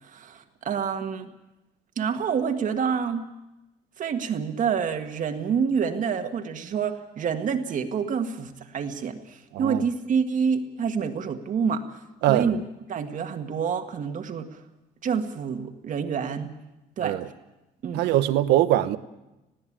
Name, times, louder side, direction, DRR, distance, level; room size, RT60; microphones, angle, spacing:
voice 1, 0.0-1.3 1.9-3.2 4.0-12.0 12.3-12.6 12.9-14.6 15.0-16.5 17.0-17.2 17.8-18.0, right 6 dB, 50° right, 1.7 m, -27 dB
voice 2, 17.9-19.0, right 14 dB, 85° right, 1.0 m, -22 dB
20.5 x 15.0 x 8.7 m
cardioid pair, 110°, 17 cm